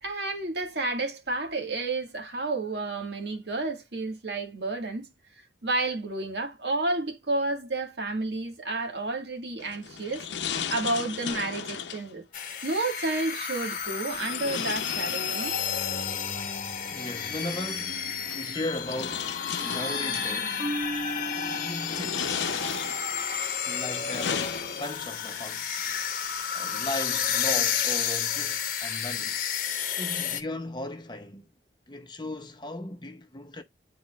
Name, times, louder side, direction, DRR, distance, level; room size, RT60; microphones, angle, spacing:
voice 1, 0.0-5.1 5.6-10.3 10.7-12.2 12.6-15.6, right 2 dB, 70° right, 1.9 m, -31 dB
sound 1, 9.6-12.1 14.1-15.8 17.1-17.2 18.2-20.3 20.9-21.3 21.8-23.2 23.7-25.2, left 7 dB, 80° left, 0.7 m, -35 dB
sound 2, 12.3-30.4, left 7 dB, 50° left, 1.0 m, -31 dB
voice 2, 16.9-20.7 21.4-22.4 23.6-25.7 26.5-29.4 30.0-31.5 31.9-33.6, left 1 dB, 25° left, 0.7 m, -37 dB
Marimba xylophone, 20.6-22.6, right 1 dB, 15° right, 1.0 m, -36 dB
9.9 x 4.2 x 2.4 m
head